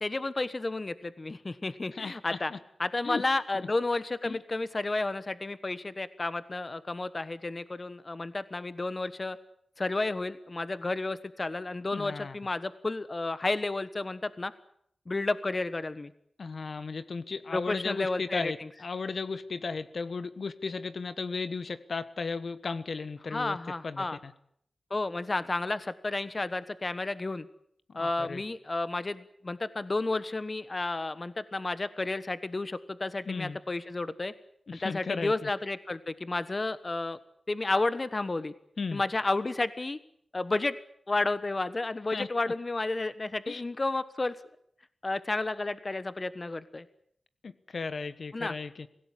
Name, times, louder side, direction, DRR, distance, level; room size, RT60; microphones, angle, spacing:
voice 1, 0.0-2.5 2.8-9.4 9.8-14.5 15.1-16.1 17.5-18.7 23.3-24.2 24.9-27.5 27.9-34.3 34.8-37.2 37.5-38.5 38.9-40.0 40.3-40.8 41.1-44.4 45.0-46.8 48.3-48.6, left 2 dB, 35° left, 14 dB, 1.1 m, -31 dB
voice 2, 1.9-2.6 3.0-3.2 4.2-4.4 11.9-12.4 16.4-23.6 23.8-24.3 27.9-28.4 33.3-33.6 34.7-35.5 38.8-39.0 42.1-42.3 43.5-43.6 47.4-48.9, left 4 dB, 70° left, 13 dB, 1.3 m, -35 dB
25.0 x 16.5 x 10.0 m, 0.69 s
wide cardioid pair, 80°, 0 cm